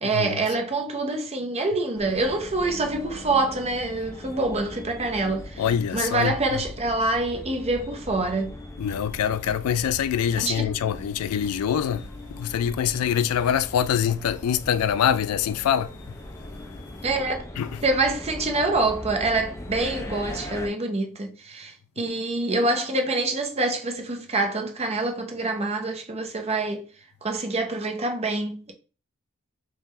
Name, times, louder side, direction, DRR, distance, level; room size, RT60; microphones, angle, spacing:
voice 1, 0.0-5.6 5.9-8.5 10.4-10.7 17.0-17.4 17.8-26.8 27.2-28.7, right 2 dB, 30° right, 0.7 m, -26 dB
sound 1, 1.9-20.7, left 1 dB, 15° left, 0.5 m, -40 dB
voice 2, 5.6-6.3 8.8-15.9 17.6-17.7, left 9 dB, 85° left, 0.3 m, -24 dB
3.6 x 2.4 x 4.2 m
head